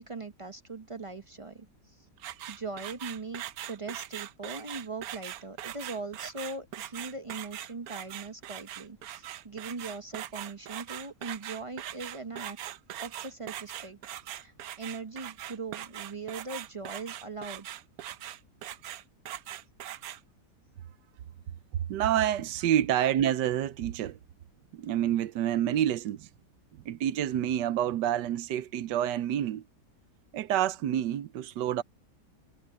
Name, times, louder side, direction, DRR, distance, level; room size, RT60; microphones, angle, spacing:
voice 1, 0.0-2.1 2.5-12.6 13.0-14.0 14.4-17.7, right 3 dB, 40° right, 0.4 m, -40 dB
sound 1, 2.2-20.2, right 12 dB, 65° right, 1.0 m, -41 dB
voice 2, 21.9-24.2 24.7-26.3 26.8-29.6 30.3-31.8, right 11 dB, 85° right, 1.4 m, -28 dB
omnidirectional pair, 1.9 m